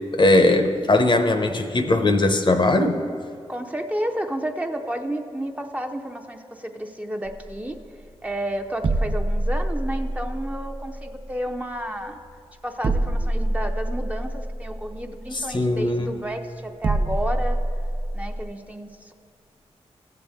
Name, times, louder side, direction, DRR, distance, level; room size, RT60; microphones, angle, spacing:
voice 1, 0.1-3.0 15.3-16.1, left 2 dB, 45° left, 6 dB, 0.8 m, -19 dB
voice 2, 3.5-7.8 8.2-12.2 12.6-17.6 18.1-19.1, right 1 dB, 10° right, 4 dB, 0.7 m, -31 dB
sound 1, 7.3-18.4, right 1 dB, 45° right, 0.5 m, -27 dB
15.0 x 7.8 x 3.6 m, 2.4 s
cardioid pair, 50°, 11 cm